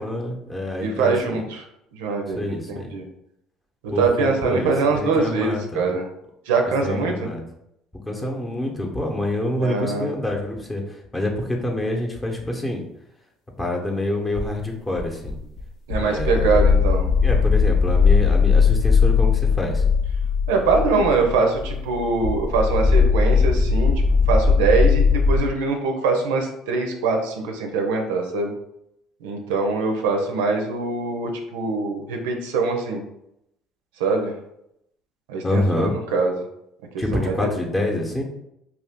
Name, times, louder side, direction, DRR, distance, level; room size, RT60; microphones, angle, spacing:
voice 1, 0.0-1.4 2.4-2.9 3.9-5.8 6.8-7.4 8.1-12.8 13.6-15.4 16.0-16.8 17.2-19.8 35.4-35.9 37.0-38.2, left 1 dB, 15° left, 1 dB, 0.8 m, -26 dB
voice 2, 0.8-1.6 2.0-3.0 3.8-6.1 6.5-7.3 9.6-10.1 15.9-17.1 20.5-23.9 24.3-28.5 29.2-33.0 34.0-34.3 35.3-36.4 37.1-37.3, right 4 dB, 85° right, 3 dB, 0.5 m, -23 dB
sound 1, 14.3-14.5 15.0-15.6 15.9-25.4, left 5 dB, 70° left, 0.6 m, -19 dB
2.6 x 2.4 x 3.5 m, 0.80 s
supercardioid pair, 75°, 0 cm